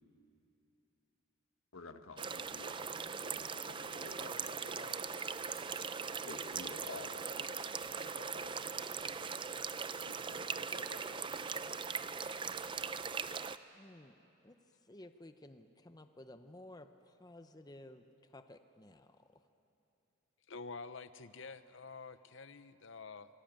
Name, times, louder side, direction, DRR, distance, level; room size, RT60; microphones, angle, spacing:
voice 1, 1.7-5.0 6.3-8.9 9.2-9.3 10.0-11.4, left 3 dB, 75° left, 7 dB, 1.5 m, -52 dB
sound 1, 2.2-13.6, right 5 dB, 25° right, 0.5 m, -40 dB
voice 2, 13.7-14.2 14.4-14.5 14.9-18.0 18.3-19.1, left 1 dB, 20° left, 8 dB, 0.7 m, -54 dB
voice 3, 20.5-23.3, left 4 dB, 60° left, 12 dB, 0.8 m, -48 dB
27.0 x 21.0 x 9.0 m, 2.9 s
head